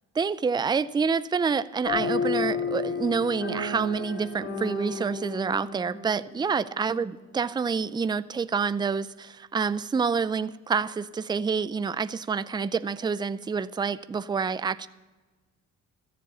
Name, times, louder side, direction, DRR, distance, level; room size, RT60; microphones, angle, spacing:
voice 1, 0.2-14.9, right 5 dB, 15° right, 15 dB, 0.4 m, -27 dB
sound 1, 1.8-7.3, left 4 dB, 45° left, 3.7 m, -32 dB
14.0 x 7.5 x 8.2 m, 1.3 s
cardioid pair, 90°, 30 cm